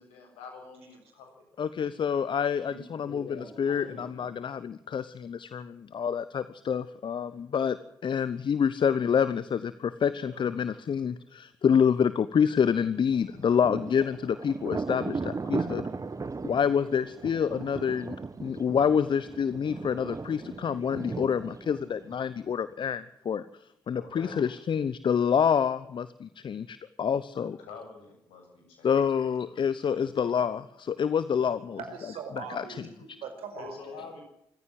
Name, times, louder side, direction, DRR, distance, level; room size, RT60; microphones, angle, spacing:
voice 1, 0.0-1.4 2.7-4.3 10.2-10.6 16.8-17.0 18.9-19.1 23.9-24.4 27.3-30.2 33.6-34.2, left 4 dB, 75° left, 3 dB, 7.8 m, -46 dB
voice 2, 1.6-3.2 3.6-7.8 8.0-15.8 16.4-23.4 23.9-27.6 28.8-31.8 32.4-32.6, left 7 dB, 50° left, 15 dB, 1.0 m, -27 dB
Thunder, 13.1-22.6, right 4 dB, 35° right, 1.4 m, -37 dB
voice 3, 31.8-33.8, right 5 dB, 70° right, 6 dB, 5.3 m, -40 dB
25.0 x 15.5 x 7.8 m, 0.79 s
hypercardioid pair, 40°, 11 cm